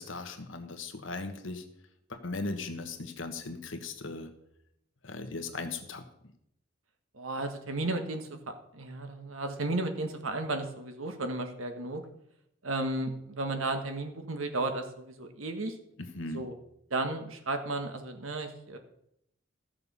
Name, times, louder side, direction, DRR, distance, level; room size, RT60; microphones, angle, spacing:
voice 1, 0.0-1.6 2.1-4.3 5.0-6.0 16.0-16.5, left 3 dB, 70° left, 7 dB, 1.4 m, -38 dB
voice 2, 7.1-12.0 12.6-15.8 16.3-16.5 16.9-18.8, right 2 dB, 90° right, 6 dB, 1.5 m, -34 dB
14.0 x 6.7 x 5.5 m, 0.77 s
head